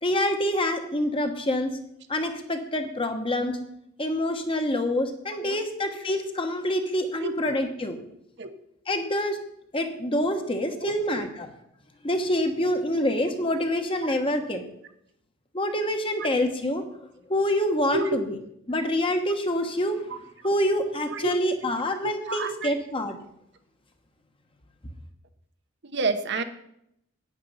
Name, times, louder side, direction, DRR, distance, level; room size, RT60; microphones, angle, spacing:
voice 1, 0.0-1.8 2.1-3.6 4.0-8.0 8.9-9.4 9.7-11.5 12.0-14.7 15.5-16.8 17.3-18.4 18.7-20.0 20.4-23.2, left 1 dB, 25° left, 6 dB, 1.2 m, -26 dB
voice 2, 7.2-7.6 8.4-8.5 10.8-11.3 17.9-18.2 21.1-21.4 22.0-22.7 25.9-26.4, right 3 dB, 60° right, 8 dB, 1.0 m, -30 dB
9.5 x 9.2 x 5.7 m, 0.77 s
head